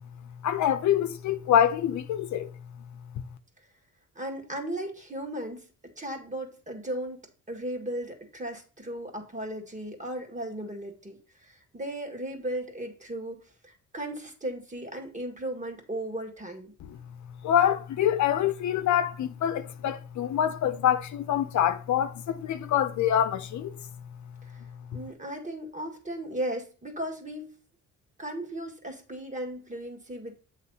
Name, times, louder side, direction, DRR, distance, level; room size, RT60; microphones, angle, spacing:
voice 1, 0.4-2.5 16.8-17.0 17.4-23.8, left 10 dB, 70° left, 0.8 m, -25 dB
voice 2, 4.2-5.7 6.0-16.7 24.4-24.6 24.9-27.5 28.2-30.3, right 1 dB, 25° right, 2.0 m, -36 dB
8.0 x 3.3 x 5.5 m
cardioid pair, 90°, 30 cm